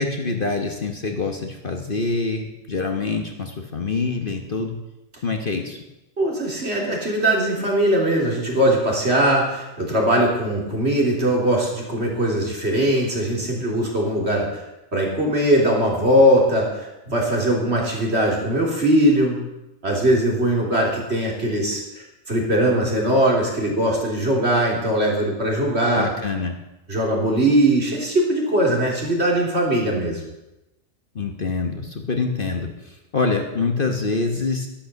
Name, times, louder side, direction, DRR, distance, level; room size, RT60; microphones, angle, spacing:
voice 1, 0.0-4.8 5.2-5.8 25.9-26.5 31.1-34.7, left 4 dB, 40° left, 4 dB, 1.3 m, -25 dB
voice 2, 6.2-14.6 14.9-19.4 19.8-21.8 22.3-26.1 26.9-30.2, right 1 dB, 50° right, -2 dB, 3.6 m, -20 dB
11.5 x 11.5 x 6.8 m, 0.97 s
omnidirectional pair, 1.4 m